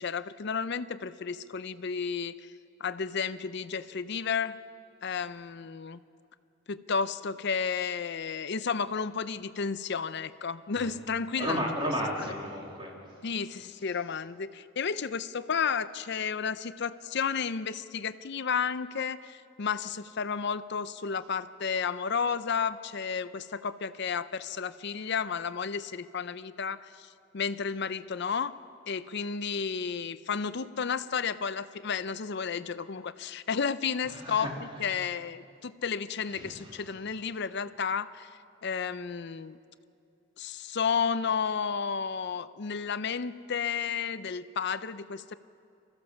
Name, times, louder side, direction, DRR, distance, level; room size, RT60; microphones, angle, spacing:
voice 1, 0.0-2.5 2.8-4.6 5.0-6.0 6.7-11.6 12.2-12.3 13.2-27.1 27.3-28.6 28.9-38.3 38.6-39.6 40.4-45.3, left 6 dB, 55° left, 14 dB, 0.6 m, -32 dB
voice 2, 11.4-13.1 34.1-34.5 36.3-36.7, equal, 25° right, -2 dB, 3.3 m, -33 dB
24.5 x 15.0 x 7.1 m, 2.6 s
head